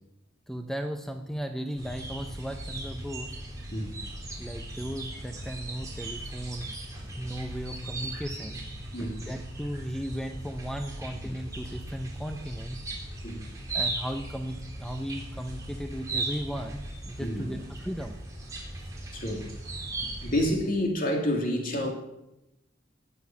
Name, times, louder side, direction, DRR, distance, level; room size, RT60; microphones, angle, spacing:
voice 1, 0.5-3.4 4.4-6.8 7.2-8.7 9.0-12.8 13.7-18.2, equal, ahead, 0.7 m, -36 dB
sound 1, 1.8-20.5, right 2 dB, 20° right, 4.2 m, -38 dB
voice 2, 19.1-19.5 20.2-21.9, left 1 dB, 50° left, 2.8 m, -28 dB
18.5 x 7.8 x 7.3 m
head